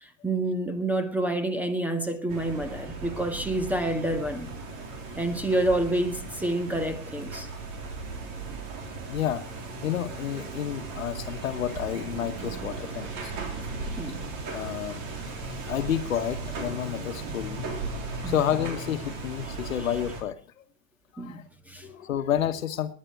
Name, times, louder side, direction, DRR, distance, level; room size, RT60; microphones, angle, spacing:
voice 1, 0.0-4.5 5.1-7.5 13.9-14.3 14.6-14.7 18.2-18.4 21.2-21.9, right 1 dB, 5° right, 1.6 m, -28 dB
sound 1, 2.3-20.2, right 3 dB, 45° right, 3.8 m, -37 dB
voice 2, 9.1-9.4 9.8-13.3 14.5-15.1 15.7-17.7 18.2-20.6 21.1-21.4 21.8-22.9, left 10 dB, 80° left, 1.3 m, -30 dB
20.0 x 9.7 x 4.7 m
hypercardioid pair, 105°, 39 cm